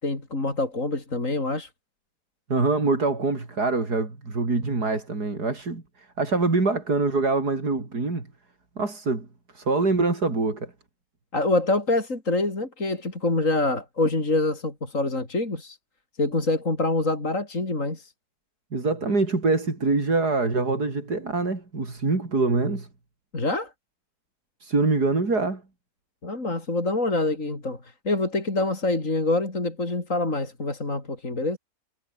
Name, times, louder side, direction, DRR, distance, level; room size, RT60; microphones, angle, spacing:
voice 1, 0.0-1.7 11.3-15.8 16.2-18.1 23.3-23.7 26.2-31.6, left 2 dB, 50° left, 4.9 m, -26 dB
voice 2, 2.5-5.8 6.2-8.3 8.8-9.3 9.5-10.7 18.7-22.9 24.6-25.6, right 3 dB, 80° right, 4.9 m, -24 dB
omnidirectional pair, 1.7 m